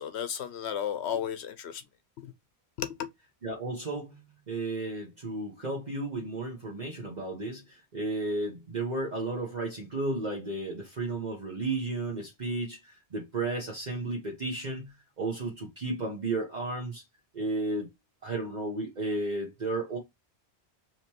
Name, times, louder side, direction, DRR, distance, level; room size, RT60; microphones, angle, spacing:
voice 1, 0.0-1.8 2.2-2.3 2.8-3.1, left 9 dB, 80° left, 0.9 m, -33 dB
voice 2, 3.4-4.2 4.5-17.0 17.3-17.9 18.2-20.0, right 2 dB, 45° right, 1.1 m, -33 dB
5.0 x 3.0 x 2.9 m
omnidirectional pair, 1.1 m